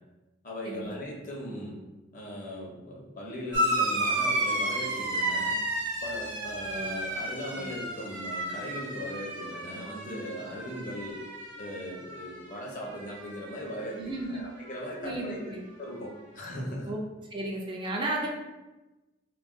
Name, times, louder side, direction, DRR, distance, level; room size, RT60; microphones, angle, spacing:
voice 1, 0.4-1.8 2.1-5.6 6.0-11.2 11.6-15.4 15.8-16.9, equal, 45° left, -3 dB, 0.7 m, -38 dB
sound 1, 3.5-12.5 12.8-13.6 14.7-14.8, right 1 dB, 75° right, 0.7 m, -32 dB
voice 2, 14.0-14.4 15.0-15.6 16.9-17.0 17.3-18.3, right 1 dB, 25° right, -1 dB, 0.4 m, -34 dB
2.3 x 2.2 x 3.6 m, 1.1 s
head